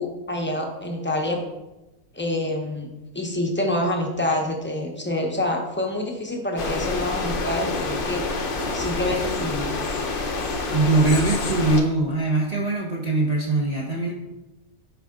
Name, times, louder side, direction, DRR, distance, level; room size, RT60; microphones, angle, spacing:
voice 1, 0.0-1.4 2.1-9.7, left 1 dB, 10° left, 1 dB, 0.8 m, -27 dB
sound 1, 6.6-11.8, left 3 dB, 45° left, 0.8 m, -27 dB
voice 2, 10.7-14.1, right 2 dB, 30° right, -4 dB, 0.9 m, -22 dB
8.2 x 4.8 x 3.8 m, 1.0 s
omnidirectional pair, 1.6 m